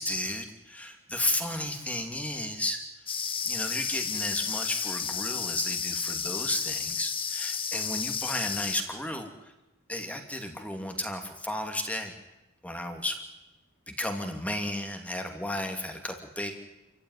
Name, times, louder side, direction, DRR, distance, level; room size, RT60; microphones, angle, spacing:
voice 1, 0.0-2.8 3.4-9.5 9.9-12.1 12.6-13.2 13.9-16.5, left 1 dB, 5° left, 4 dB, 2.6 m, -33 dB
sound 1, 3.1-8.8, left 6 dB, 25° left, 1.5 m, -32 dB
28.0 x 15.5 x 9.8 m, 0.96 s
head